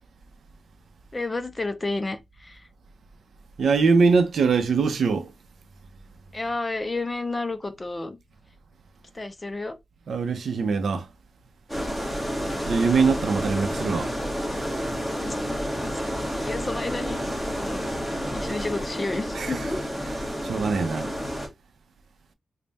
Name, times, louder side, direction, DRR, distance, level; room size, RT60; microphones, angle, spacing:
voice 1, 1.1-2.7 6.3-8.2 9.1-9.8 12.4-12.7 15.2-16.1 16.4-17.8 18.3-19.8, left 2 dB, 20° left, 0.5 m, -31 dB
voice 2, 3.6-5.3 10.1-11.1 12.6-14.1 19.3-21.1, right 4 dB, 75° right, 0.6 m, -23 dB
sound 1, 11.7-21.5, equal, 5° left, 1.3 m, -30 dB
3.4 x 2.2 x 3.9 m
wide cardioid pair, 140°, 0 cm